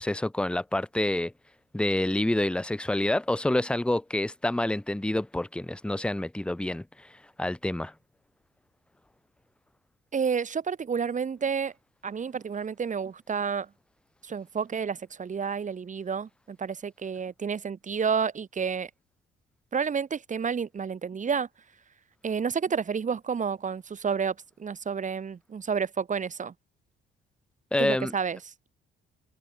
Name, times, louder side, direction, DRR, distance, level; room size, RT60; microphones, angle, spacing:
voice 1, 0.0-1.3 1.7-7.9 27.7-28.1, left 1 dB, 5° left, 0.9 m, -28 dB
voice 2, 10.1-11.7 12.0-13.7 14.2-18.9 19.7-21.5 22.2-26.5 27.8-28.4, right 6 dB, 40° right, 1.9 m, -30 dB
cardioid pair, 90°, 20 cm